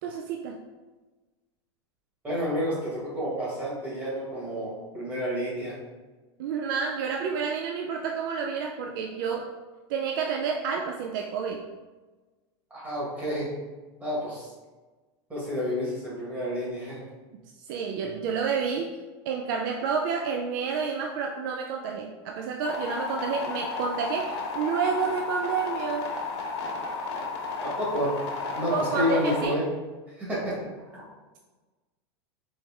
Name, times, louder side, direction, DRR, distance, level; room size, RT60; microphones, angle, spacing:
voice 1, 0.0-0.6 6.4-9.5 9.9-11.6 17.7-19.0 19.3-26.1 28.7-29.6, right 6 dB, 50° right, 2 dB, 0.4 m, -29 dB
voice 2, 2.2-5.8 12.7-13.5 14.0-14.5 15.3-17.0 27.6-28.1 28.5-29.6 30.2-30.6 30.9-31.0, equal, 10° right, -7 dB, 1.3 m, -30 dB
sound 1, 22.7-29.5, left 4 dB, 80° left, 1.2 m, -33 dB
4.3 x 3.3 x 3.5 m, 1.3 s
supercardioid pair, 170°, 14 cm